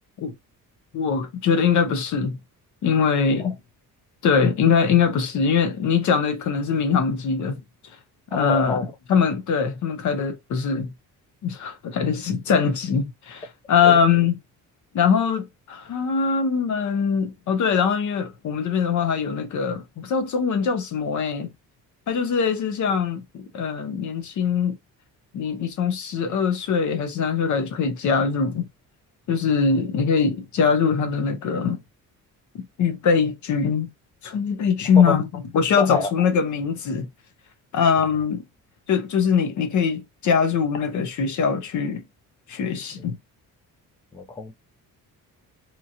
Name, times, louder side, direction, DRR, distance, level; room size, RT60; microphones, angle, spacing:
voice 1, 0.9-2.4 2.8-3.6 4.2-7.6 8.3-10.9 11.4-14.4 14.9-21.5 22.1-24.8 25.3-28.7 29.3-31.8 32.8-33.9 34.2-35.3 35.5-37.1 37.7-38.4 38.9-42.0 42.5-43.2, left 6 dB, 60° left, 0.7 m, -22 dB
voice 2, 8.3-8.9 13.8-14.0 35.0-35.2 35.8-36.1 44.1-44.5, left 3 dB, 15° left, 0.3 m, -27 dB
2.9 x 2.7 x 2.4 m
cardioid pair, 160°, 34 cm